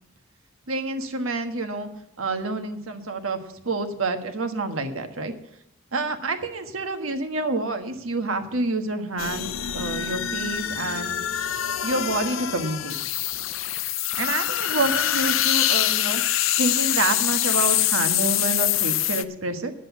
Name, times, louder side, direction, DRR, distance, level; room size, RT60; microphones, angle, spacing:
voice 1, 0.7-1.9 2.2-3.4 3.6-5.3 5.9-11.2 11.8-13.0 14.2-16.2 16.6-19.7, right 2 dB, 90° right, 7 dB, 1.4 m, -28 dB
sound 1, 9.2-19.2, left 12 dB, 75° left, 0.6 m, -25 dB
10.0 x 7.8 x 8.2 m, 0.80 s
head